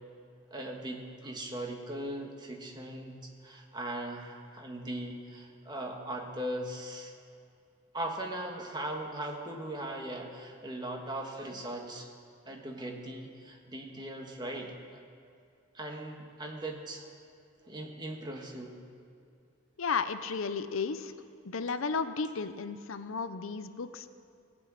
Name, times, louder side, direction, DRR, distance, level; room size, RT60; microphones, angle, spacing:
voice 1, 0.5-7.1 7.9-12.1 12.4-15.0 15.7-17.1 17.7-18.8, right 1 dB, 20° right, 1 dB, 1.5 m, -39 dB
voice 2, 19.8-21.1 21.4-24.2, left 5 dB, 80° left, 11 dB, 0.6 m, -33 dB
18.5 x 6.2 x 8.6 m, 2.4 s
head